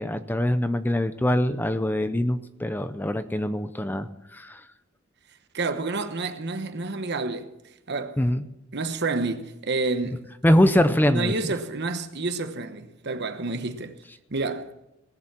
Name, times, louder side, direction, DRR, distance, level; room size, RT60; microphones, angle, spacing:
voice 1, 0.0-4.6 8.2-8.5 10.4-11.3, left 1 dB, 10° left, 0.5 m, -23 dB
voice 2, 5.5-7.5 7.9-8.2 8.7-10.3 11.1-14.0 14.3-14.7, right 3 dB, 55° right, 1.0 m, -29 dB
18.5 x 7.0 x 7.4 m
head